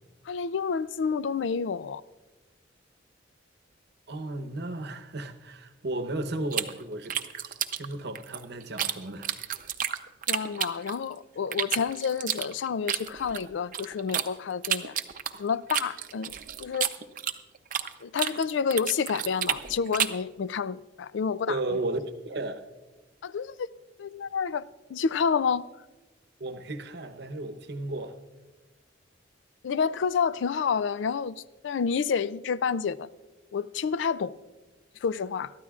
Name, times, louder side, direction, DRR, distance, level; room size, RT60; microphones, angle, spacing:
voice 1, 0.3-2.0 10.3-14.9 15.4-16.9 18.0-21.8 23.2-23.7 24.0-24.6 24.9-25.6 29.6-33.1 33.5-34.3 35.0-35.5, left 6 dB, 75° left, 0.4 m, -29 dB
voice 2, 4.1-7.2 7.4-9.3 21.5-22.0 22.3-22.6 26.4-28.2, right 2 dB, 65° right, 0.9 m, -34 dB
sound 1, 6.5-8.9 9.2-11.1 11.5-14.3 14.6-17.9 18.2-20.2, right 9 dB, 45° right, 0.6 m, -30 dB
22.5 x 13.0 x 2.4 m
head